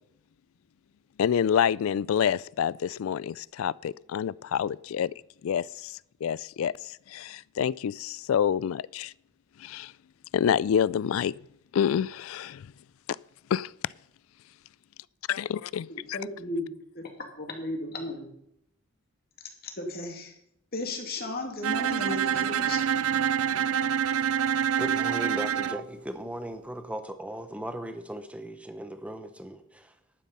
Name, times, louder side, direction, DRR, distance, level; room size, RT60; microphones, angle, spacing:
voice 1, 1.2-5.1 5.4-9.1 9.6-9.9 10.3-11.4 11.7-12.7 13.5-13.7 15.3-16.2, left 8 dB, 70° left, 0.3 m, -27 dB
voice 2, 15.9-16.7 16.9-17.1 17.4-18.3 19.8-20.4 20.7-22.9, left 2 dB, 45° left, 2.5 m, -35 dB
Bowed string instrument, 21.6-25.8, right 8 dB, 85° right, 0.5 m, -26 dB
voice 3, 24.8-29.9, right 1 dB, 5° right, 1.0 m, -37 dB
11.5 x 9.2 x 5.4 m
head